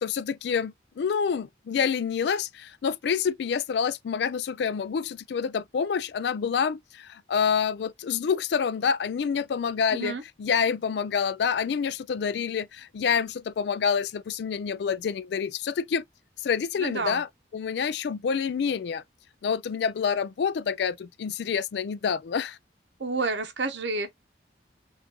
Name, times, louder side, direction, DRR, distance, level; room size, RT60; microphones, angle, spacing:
voice 1, 0.0-16.0 16.4-17.3 17.5-19.0 19.4-22.6, left 6 dB, 60° left, 0.3 m, -27 dB
voice 2, 9.9-10.2 16.8-17.2 23.0-24.1, right 3 dB, 70° right, 0.9 m, -29 dB
5.7 x 2.5 x 2.9 m
head